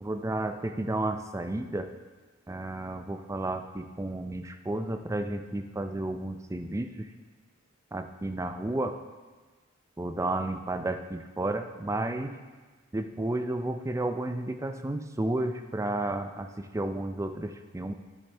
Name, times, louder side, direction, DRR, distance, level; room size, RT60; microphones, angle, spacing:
voice 1, 0.0-1.9 2.5-7.1 7.9-9.0 10.0-12.3 12.9-17.9, right 2 dB, 15° right, 8 dB, 0.4 m, -32 dB
12.5 x 6.3 x 3.3 m, 1.3 s
head